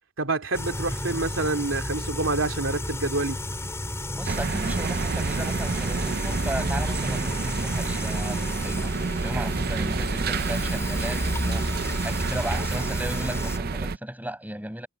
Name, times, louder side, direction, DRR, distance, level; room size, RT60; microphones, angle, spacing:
voice 1, 0.2-3.4, right 2 dB, 85° right, 2.6 m, -27 dB
sound 1, 0.5-13.6, left 1 dB, 15° left, 4.4 m, -32 dB
voice 2, 4.2-14.9, right 1 dB, 10° right, 5.8 m, -35 dB
sound 2, 4.3-14.0, right 4 dB, 50° right, 0.5 m, -29 dB
head